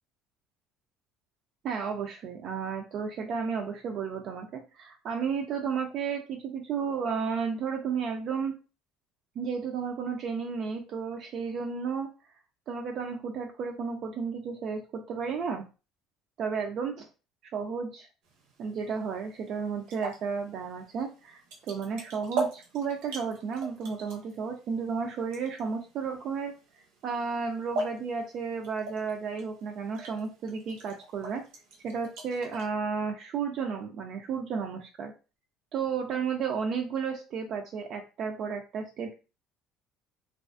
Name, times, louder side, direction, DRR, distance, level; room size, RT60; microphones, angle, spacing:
voice 1, 1.6-8.5 9.4-12.1 12.7-15.6 16.4-17.1 17.5-18.1 18.6-31.4 31.8-35.1 35.7-39.2, right 6 dB, 55° right, 2 dB, 0.3 m, -33 dB
sound 1, 18.2-32.7, right 3 dB, 90° right, 0.7 m, -41 dB
2.4 x 2.3 x 2.4 m, 0.33 s
cardioid pair, 110°, 0 cm